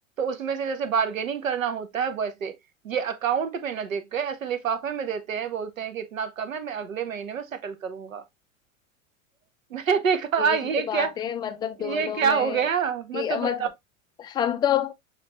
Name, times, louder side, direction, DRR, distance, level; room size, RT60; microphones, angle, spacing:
voice 1, 0.2-2.5 2.8-8.2 9.7-11.1 11.8-13.7, right 7 dB, 80° right, 0.9 m, -27 dB
voice 2, 10.9-12.6 13.1-13.7 14.2-14.9, left 10 dB, 10° left, 0.3 m, -28 dB
6.6 x 2.6 x 2.9 m
figure-of-eight pair, 90°, 40 cm